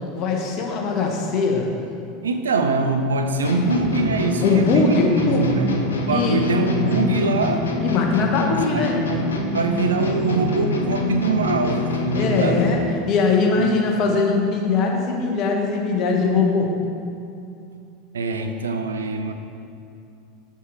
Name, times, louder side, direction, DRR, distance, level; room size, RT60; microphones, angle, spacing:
voice 1, 0.1-1.7 4.4-5.4 6.1-6.4 7.8-9.0 12.1-12.8 13.1-16.7, left 4 dB, 45° left, 1 dB, 0.9 m, -21 dB
voice 2, 2.2-7.7 8.5-12.6 13.6-13.8 18.1-19.3, right 3 dB, 75° right, 6 dB, 0.4 m, -23 dB
sound 1, 3.4-12.8, left 3 dB, 75° left, 0.6 m, -26 dB
5.9 x 5.7 x 3.6 m, 2.5 s
figure-of-eight pair, 80°, 0 cm